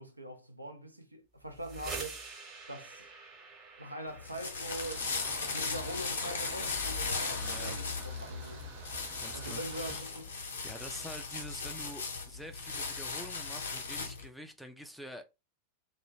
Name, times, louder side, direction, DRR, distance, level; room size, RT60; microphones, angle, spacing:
voice 1, 0.0-2.2 2.7-3.1 3.8-8.7 9.3-10.3, right 1 dB, 85° right, 0.5 m, -43 dB
sound 1, 1.4-11.2, right 4 dB, 25° right, 0.9 m, -50 dB
sound 2, 4.1-14.3, left 4 dB, 65° left, 0.6 m, -37 dB
sound 3, 4.7-9.9, right 5 dB, 50° right, 0.9 m, -48 dB
voice 2, 7.3-7.8 9.2-10.1 10.6-15.2, equal, ahead, 0.4 m, -47 dB
2.2 x 2.1 x 3.1 m
figure-of-eight pair, 90°, 0 cm